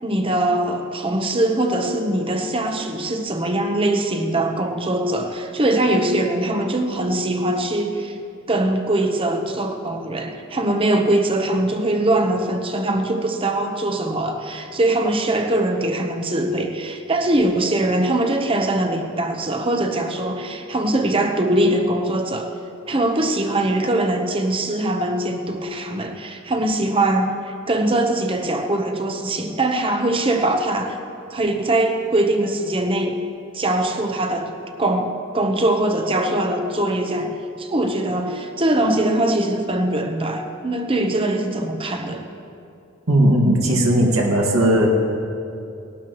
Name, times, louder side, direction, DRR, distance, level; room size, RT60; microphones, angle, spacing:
voice 1, 0.0-8.2 8.5-22.5 22.9-31.0 31.3-33.2 33.5-34.5 34.8-42.2, right 1 dB, 25° right, 5 dB, 0.9 m, -22 dB
voice 2, 43.1-44.9, right 1 dB, 85° right, -1 dB, 2.0 m, -17 dB
19.0 x 12.0 x 3.1 m, 2.6 s
head